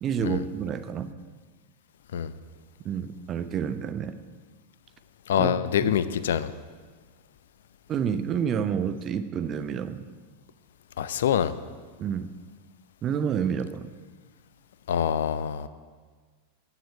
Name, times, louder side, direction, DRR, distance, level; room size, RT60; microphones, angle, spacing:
voice 1, 0.0-1.1 2.8-4.2 5.4-5.9 7.9-10.1 12.0-12.3 13.0-13.9, right 7 dB, 30° right, 10 dB, 0.9 m, -29 dB
voice 2, 5.3-6.5 11.0-11.5 14.9-15.7, left 9 dB, 60° left, 14 dB, 0.7 m, -25 dB
15.5 x 7.5 x 9.4 m, 1.5 s
figure-of-eight pair, 90°, 0 cm